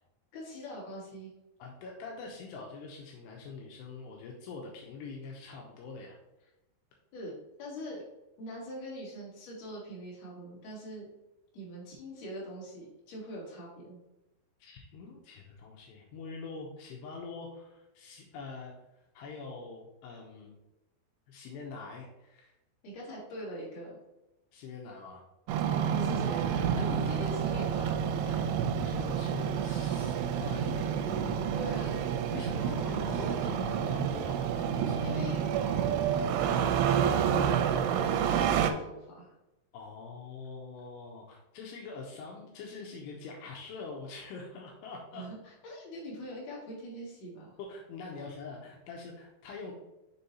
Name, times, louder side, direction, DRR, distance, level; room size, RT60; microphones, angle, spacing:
voice 1, 0.3-1.3 7.1-7.3 7.6-8.0 8.4-11.1 11.5-14.0 22.8-23.9 25.9-28.5 31.6-32.0 35.0-35.5 36.1-39.3 45.1-47.5 48.2-48.3, equal, 45° left, -5 dB, 2.8 m, -43 dB
voice 2, 1.6-6.2 14.6-18.7 19.1-20.5 21.3-22.5 24.5-25.2 28.7-30.9 32.3-35.8 39.7-45.2 47.6-49.7, left 4 dB, 80° left, -1 dB, 2.8 m, -44 dB
Engine starting, 25.5-38.7, right 8 dB, 85° right, 2.6 m, -29 dB
7.0 x 3.8 x 4.1 m, 0.96 s
omnidirectional pair, 5.0 m